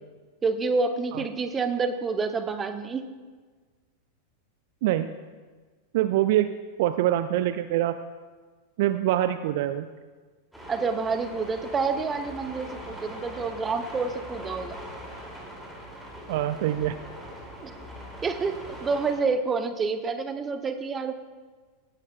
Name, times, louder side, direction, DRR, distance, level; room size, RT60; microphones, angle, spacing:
voice 1, 0.4-3.1 10.7-14.8 17.6-17.7 18.2-18.5 18.8-21.1, right 4 dB, 20° right, 8 dB, 0.8 m, -28 dB
voice 2, 5.9-8.0 8.8-9.9 16.3-17.0, right 13 dB, 50° right, 11 dB, 0.4 m, -25 dB
sound 1, 10.5-19.1, equal, ahead, 2.5 m, -41 dB
17.5 x 10.0 x 2.3 m, 1.4 s
figure-of-eight pair, 90°, 0 cm